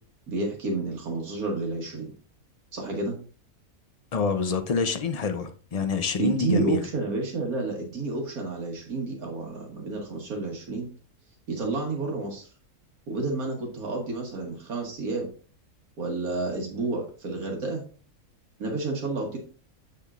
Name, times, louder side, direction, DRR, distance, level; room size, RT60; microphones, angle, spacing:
voice 1, 0.3-2.1 2.7-3.1 6.2-10.9 11.5-12.5 13.1-15.3 16.0-17.8 18.6-19.4, right 3 dB, 80° right, 1.8 m, -30 dB
voice 2, 4.1-6.9, left 4 dB, 50° left, 0.4 m, -27 dB
7.6 x 7.0 x 2.4 m
omnidirectional pair, 1.5 m